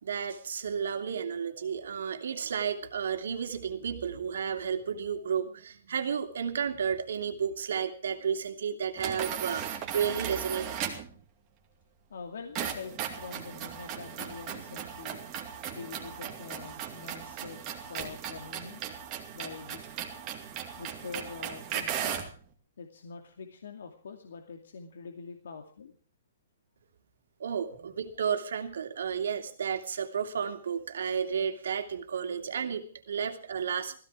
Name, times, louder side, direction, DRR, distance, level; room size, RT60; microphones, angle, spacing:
voice 1, 0.0-10.8 27.4-34.0, right 7 dB, 70° right, 6 dB, 2.7 m, -32 dB
sound 1, 9.0-11.1 12.5-22.3, right 9 dB, 20° right, 2.4 m, -37 dB
voice 2, 12.1-15.2 15.7-18.8 19.3-19.8 20.8-22.2 22.8-26.0, left 5 dB, 70° left, 4 dB, 2.4 m, -44 dB
17.5 x 15.5 x 4.8 m, 0.41 s
hypercardioid pair, 175°, 0 cm